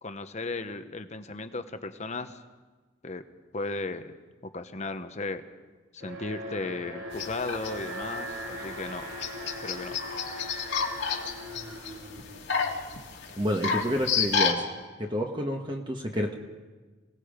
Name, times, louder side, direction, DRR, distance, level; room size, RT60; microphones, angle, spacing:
voice 1, 0.0-2.4 3.0-3.2 3.5-4.1 4.5-5.4 5.9-9.1 9.6-10.0, left 3 dB, 35° left, 9 dB, 1.1 m, -35 dB
Alarm, 6.0-13.1, equal, 90° right, 3.5 m, -40 dB
sound 1, 7.1-14.5, left 6 dB, 70° left, 2.6 m, -31 dB
voice 2, 13.4-14.6 15.0-16.4, equal, 25° right, 1 dB, 1.3 m, -29 dB
27.5 x 18.5 x 5.1 m, 1.3 s
head